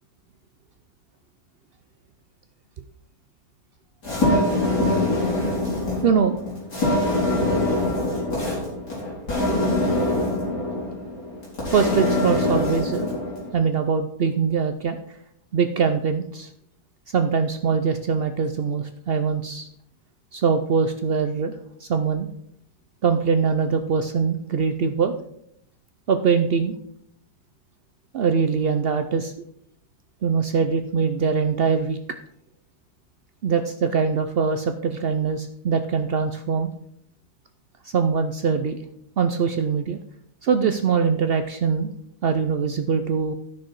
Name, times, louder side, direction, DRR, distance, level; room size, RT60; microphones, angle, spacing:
sound 1, 4.0-13.5, left 1 dB, 85° left, 4.1 m, -24 dB
voice 1, 6.0-6.4 11.7-13.1 13.5-15.0 15.5-16.5 17.1-19.7 20.3-21.6 21.8-22.3 23.0-25.1 26.1-26.8 28.1-29.3 30.2-32.0 33.4-36.7 37.8-38.8 39.2-40.0 40.4-41.9 42.2-43.3, right 6 dB, 80° right, 8 dB, 0.5 m, -22 dB
12.0 x 6.4 x 4.7 m, 0.71 s
omnidirectional pair, 1.7 m